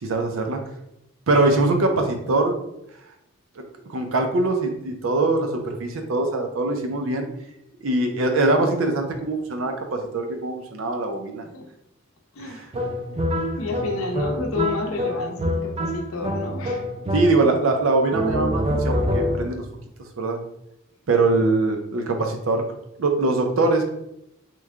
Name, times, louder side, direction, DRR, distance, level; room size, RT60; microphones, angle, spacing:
voice 1, 0.0-0.6 1.3-2.6 3.6-3.7 3.9-7.3 7.8-11.4 12.4-12.6 17.1-19.6 20.2-20.4 21.1-22.6 23.0-23.9, right 2 dB, 80° right, 4 dB, 0.5 m, -22 dB
voice 2, 12.3-12.7 13.6-16.8, left 4 dB, 90° left, 3 dB, 0.6 m, -30 dB
sound 1, 12.7-17.7 18.1-19.6, equal, 30° right, 0.3 m, -26 dB
3.1 x 2.2 x 3.5 m, 0.82 s
head